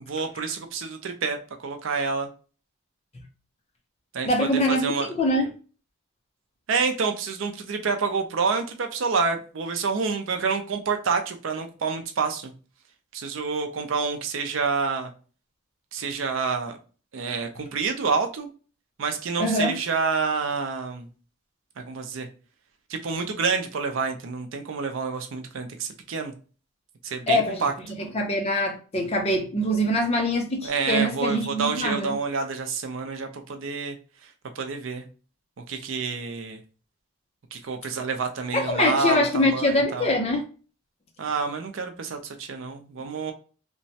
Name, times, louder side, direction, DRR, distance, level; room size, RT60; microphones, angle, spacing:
voice 1, 0.1-2.3 4.1-5.1 6.7-12.5 13.1-15.1 15.9-16.8 17.1-18.5 19.0-21.1 21.8-22.3 22.9-26.3 27.0-27.7 30.6-34.0 34.6-35.0 35.7-36.6 37.5-40.1 41.2-43.3, right 4 dB, 65° right, 0.5 m, -28 dB
voice 2, 4.2-5.5 19.4-19.7 27.3-27.6 28.0-32.2 38.5-40.4, left 1 dB, 30° left, 0.5 m, -24 dB
3.0 x 2.2 x 2.7 m
head